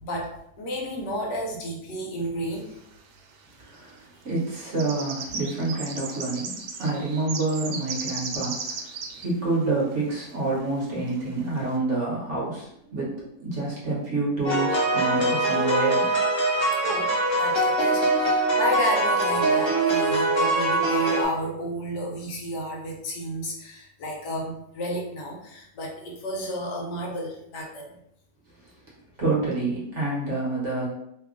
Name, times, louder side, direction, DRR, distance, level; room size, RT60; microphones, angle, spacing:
voice 1, 0.0-2.8 6.8-6.9 16.8-28.0, equal, 80° left, -1 dB, 1.5 m, -32 dB
sound 1, 2.9-3.0 3.8-4.0 4.3-9.3 9.5-9.6 10.1-10.2 10.9-11.0 11.5-11.7, right 5 dB, 80° right, 1.1 m, -35 dB
voice 2, 3.6-4.0 4.2-8.8 9.1-16.1 29.2-30.9, right 2 dB, 50° right, -5 dB, 1.2 m, -28 dB
sound 2, 14.4-21.2, right 2 dB, 30° left, 0.5 m, -23 dB
3.4 x 2.3 x 3.6 m, 0.75 s
omnidirectional pair, 1.8 m